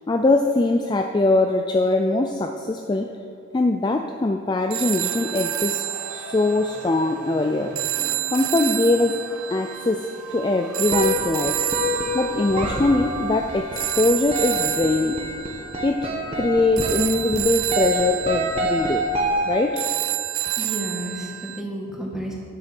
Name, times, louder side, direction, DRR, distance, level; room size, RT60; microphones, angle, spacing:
voice 1, 0.1-3.1 3.5-7.7 8.3-9.2 9.5-11.6 12.1-15.2 15.8-19.1 19.5-19.9, left 2 dB, 20° left, 4 dB, 0.3 m, -22 dB
sound 1, 4.7-21.6, right 14 dB, 65° right, 0.4 m, -29 dB
sound 2, 5.0-14.6, right 4 dB, 90° right, 1.1 m, -40 dB
sound 3, 10.9-19.9, equal, 25° right, 1.1 m, -27 dB
voice 2, 20.6-22.4, right 1 dB, ahead, -3 dB, 1.4 m, -31 dB
9.8 x 7.6 x 5.9 m, 2.5 s
head